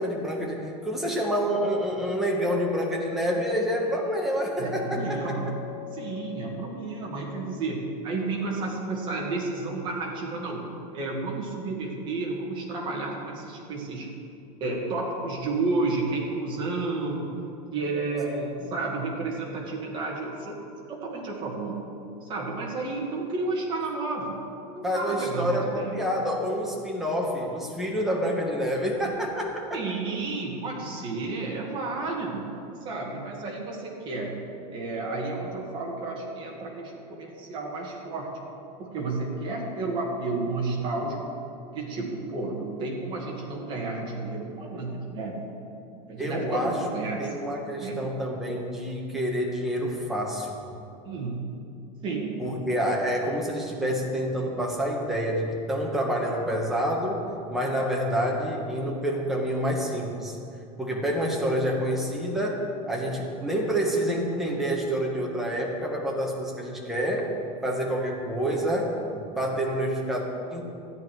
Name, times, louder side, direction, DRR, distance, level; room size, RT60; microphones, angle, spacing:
voice 1, 0.0-5.4 18.3-18.6 24.8-29.8 46.2-46.8 47.2-50.6 52.4-60.4 60.8-67.3 67.6-70.6, equal, ahead, -2 dB, 1.1 m, -28 dB
sound 1, 1.8-6.8, left 15 dB, 40° left, 2.8 m, -41 dB
voice 2, 4.6-5.6 5.9-14.1 14.6-17.3 17.7-18.4 18.7-20.6 20.9-21.8 22.2-24.4 24.7-26.0 29.7-34.4 34.7-38.3 38.8-41.3 41.7-45.4 46.1-47.3 47.8-48.0 51.0-51.5 52.0-52.4, right 3 dB, 25° right, -2 dB, 1.9 m, -31 dB
13.5 x 9.5 x 4.7 m, 2.6 s
supercardioid pair, 180°, 20 cm